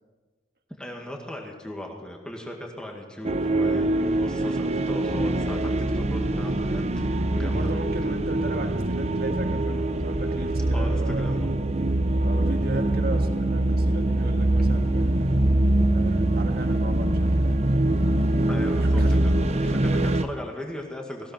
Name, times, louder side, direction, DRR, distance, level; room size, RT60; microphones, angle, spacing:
voice 1, 0.8-6.8 7.4-7.7 10.7-11.4 18.5-21.3, left 1 dB, 5° left, 0 dB, 1.9 m, -37 dB
sound 1, 3.2-20.2, right 1 dB, 35° right, 0.7 m, -23 dB
voice 2, 7.4-11.4 12.2-15.3 15.8-17.8 18.8-19.2, right 2 dB, 55° right, 4 dB, 1.8 m, -37 dB
18.5 x 16.0 x 4.5 m, 1.3 s
head